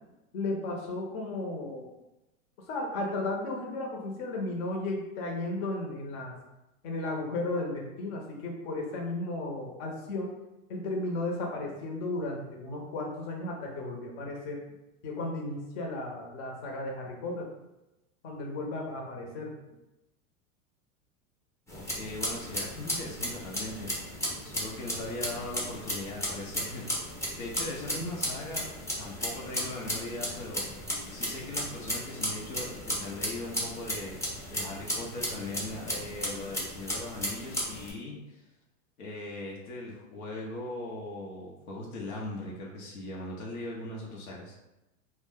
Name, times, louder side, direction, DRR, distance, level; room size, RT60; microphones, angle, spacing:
voice 1, 0.3-1.9 2.7-6.3 6.8-10.4 10.7-14.6 15.0-17.5 18.2-19.5, left 2 dB, 55° left, 0 dB, 0.9 m, -34 dB
voice 2, 21.7-27.1 27.4-28.7 29.0-38.4 39.0-44.5, left 2 dB, 85° left, -3 dB, 0.7 m, -39 dB
sound 1, 21.7-37.9, equal, 5° left, 0.5 m, -35 dB
2.4 x 2.2 x 3.5 m, 0.96 s
hypercardioid pair, 105°, 42 cm